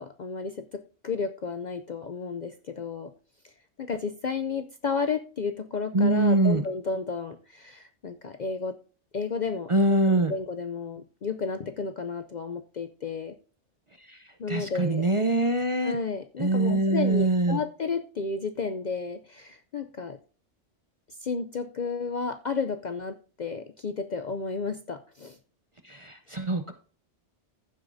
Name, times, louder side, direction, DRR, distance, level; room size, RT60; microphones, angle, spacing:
voice 1, 0.0-3.1 3.4-3.5 3.8-8.7 9.1-13.4 14.4-15.1 15.8-20.2 21.2-25.4, left 5 dB, 50° left, 7 dB, 0.5 m, -32 dB
voice 2, 5.9-6.6 9.7-10.3 14.1-14.2 14.5-16.0 16.4-17.6 25.8-26.7, right 2 dB, 35° right, 6 dB, 0.6 m, -23 dB
14.5 x 8.0 x 2.6 m, 0.41 s
omnidirectional pair, 1.2 m